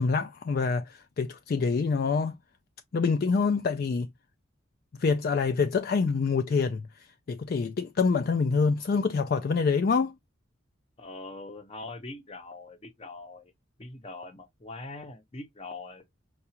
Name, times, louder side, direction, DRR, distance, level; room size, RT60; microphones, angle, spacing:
voice 1, 0.0-2.3 2.9-4.1 5.0-10.2, left 4 dB, 45° left, 0.3 m, -26 dB
voice 2, 11.0-13.5 13.8-16.0, left 2 dB, 30° left, 0.7 m, -42 dB
5.6 x 2.3 x 2.8 m
head